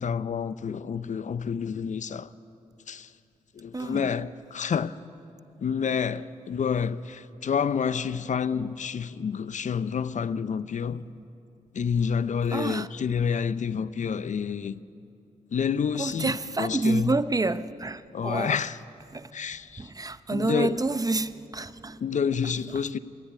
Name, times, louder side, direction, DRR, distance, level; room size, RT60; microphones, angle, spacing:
voice 1, 0.0-2.3 2.9-3.1 3.5-5.0 5.6-11.0 11.7-14.8 15.5-17.1 18.1-18.8 19.3-19.9 20.3-20.8 22.0-23.0, left 6 dB, 60° left, 0.6 m, -29 dB
voice 2, 3.7-4.1 11.1-11.3 12.5-12.9 16.0-18.6 19.1-19.3 19.8-22.0 22.7-22.8, right 2 dB, 25° right, 0.7 m, -28 dB
21.5 x 13.5 x 9.7 m
cardioid pair, 60°, 14 cm